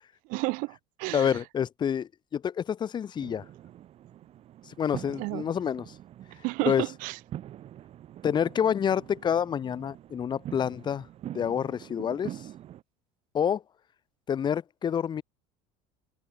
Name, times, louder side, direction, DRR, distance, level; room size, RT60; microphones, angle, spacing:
voice 1, 0.3-1.3 5.2-5.5 6.4-7.2, right 27 dB, 70° right, 2.1 m, -31 dB
voice 2, 1.1-3.4 4.7-5.9 6.7-6.8 8.2-11.1 11.3-12.4 13.3-13.6 14.3-15.2, left 8 dB, 30° left, 1.9 m, -28 dB
sound 1, 3.2-12.8, right 12 dB, 45° right, 4.8 m, -44 dB
cardioid pair, 125°, 14 cm